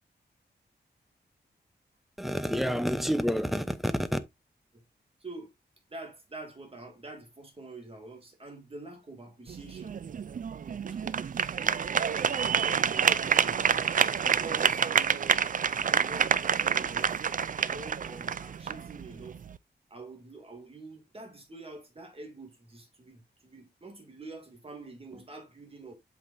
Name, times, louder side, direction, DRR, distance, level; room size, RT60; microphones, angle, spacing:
voice 1, 2.2-4.2, equal, ahead, 0.8 m, -28 dB
voice 2, 5.2-5.5 5.9-10.0 10.8-13.9 14.2-15.3 15.9-17.2 17.5-19.4 19.9-25.9, right 2 dB, 30° right, 2.5 m, -46 dB
sound 1, 9.5-19.6, right 7 dB, 50° right, 0.4 m, -28 dB
8.1 x 5.9 x 2.7 m
wide cardioid pair, 140°, 18 cm